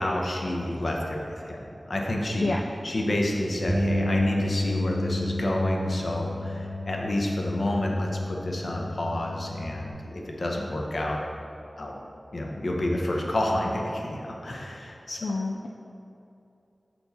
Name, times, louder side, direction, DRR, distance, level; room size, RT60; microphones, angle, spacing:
voice 1, 0.0-2.5 2.8-11.2 11.8-11.9 12.3-15.2, left 1 dB, 60° left, -1 dB, 0.8 m, -29 dB
Bass guitar, 3.7-9.9, left 1 dB, 10° right, 0.9 m, -31 dB
voice 2, 15.2-15.7, left 3 dB, 80° left, -1 dB, 0.3 m, -28 dB
6.8 x 4.3 x 4.1 m, 2.8 s
wide cardioid pair, 80°, 0 cm